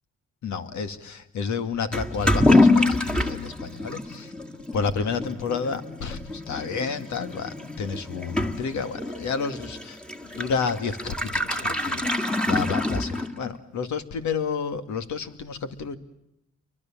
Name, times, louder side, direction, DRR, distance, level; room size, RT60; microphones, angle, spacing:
voice 1, 0.4-4.3 4.7-16.0, left 5 dB, 70° left, 9 dB, 2.3 m, -30 dB
Toilet flush / Liquid, 1.9-13.6, left 2 dB, 5° left, 2.1 m, -26 dB
29.5 x 24.0 x 7.4 m, 0.85 s
cardioid pair, 90°, 30 cm